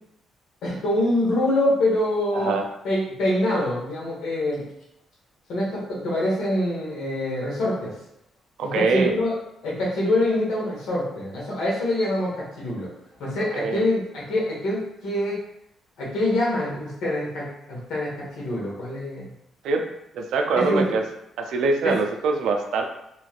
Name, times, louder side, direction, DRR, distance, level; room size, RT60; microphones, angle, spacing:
voice 1, 0.6-2.6 2.8-4.6 5.5-7.9 8.6-9.3 9.6-12.9 13.2-15.4 16.0-19.3 20.5-20.8 21.8-21.9, left 1 dB, 80° left, -5 dB, 1.3 m, -25 dB
voice 2, 2.3-2.7 8.6-9.1 13.5-13.8 19.6-19.8 20.1-21.0 21.4-22.8, right 4 dB, 80° right, 4 dB, 0.4 m, -23 dB
3.0 x 3.0 x 2.4 m, 0.80 s
cardioid pair, 90°, 0 cm